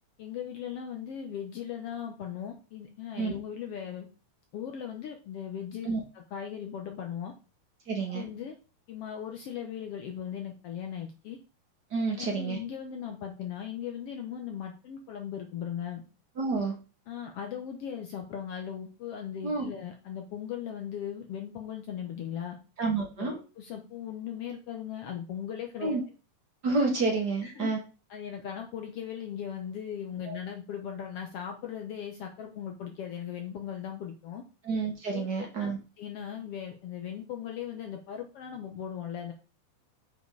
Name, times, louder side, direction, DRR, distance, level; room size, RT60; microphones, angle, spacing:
voice 1, 0.2-4.1 4.5-5.9 6.1-7.3 8.1-8.5 8.9-11.4 12.2-16.0 17.1-22.6 23.2-26.0 27.4-27.7 28.1-34.4 35.1-35.7 36.0-39.3, left 9 dB, 70° left, 3 dB, 1.5 m, -38 dB
voice 2, 7.9-8.2 11.9-12.6 16.4-16.7 19.4-19.6 22.8-23.3 25.8-26.0 26.6-27.8 30.3-30.4 34.6-35.8, right 4 dB, 50° right, 1 dB, 1.2 m, -29 dB
6.7 x 5.2 x 4.7 m, 0.33 s
omnidirectional pair, 3.5 m